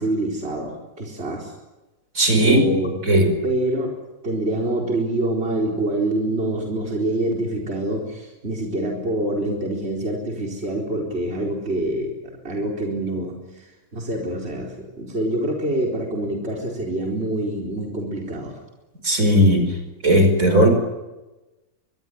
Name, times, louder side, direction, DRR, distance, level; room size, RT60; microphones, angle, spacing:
voice 1, 0.0-1.5 2.4-3.0 3.4-3.9 4.2-18.6, right 1 dB, 45° right, 0 dB, 4.5 m, -26 dB
voice 2, 2.1-2.7 3.0-3.3 19.0-19.8 20.0-20.7, equal, 60° right, 6 dB, 5.6 m, -16 dB
25.0 x 22.0 x 9.3 m, 1.1 s
omnidirectional pair, 1.6 m